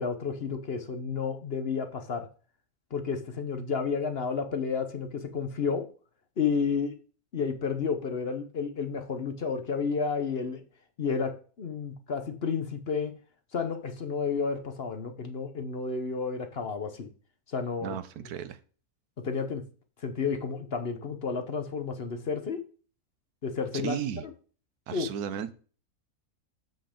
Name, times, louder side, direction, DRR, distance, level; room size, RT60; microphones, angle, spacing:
voice 1, 0.0-2.3 2.9-5.9 6.4-7.0 7.3-10.6 11.0-13.1 13.5-17.1 17.5-18.0 19.2-19.6 20.0-22.6 23.4-24.0 24.9-25.1, left 5 dB, 45° left, 7 dB, 1.0 m, -31 dB
voice 2, 17.8-18.6 23.7-24.2 24.9-25.5, right 9 dB, 85° right, 13 dB, 1.2 m, -34 dB
7.7 x 5.9 x 5.0 m, 0.39 s
omnidirectional pair, 1.6 m